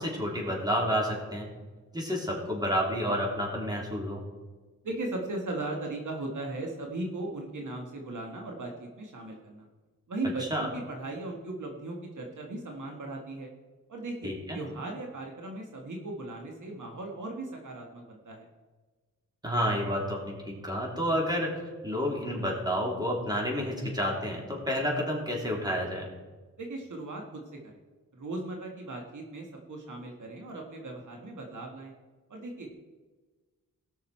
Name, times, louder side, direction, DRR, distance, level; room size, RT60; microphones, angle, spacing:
voice 1, 0.0-1.5 1.9-4.2 10.5-10.7 14.2-14.6 19.4-21.5 21.8-26.1, equal, 10° right, -2 dB, 3.6 m, -30 dB
voice 2, 4.8-9.7 10.1-13.5 13.9-18.4 26.6-27.8 28.1-31.9 32.3-32.7, right 2 dB, 65° right, 1 dB, 1.8 m, -37 dB
18.0 x 6.5 x 4.4 m, 1.3 s
cardioid pair, 75°, 32 cm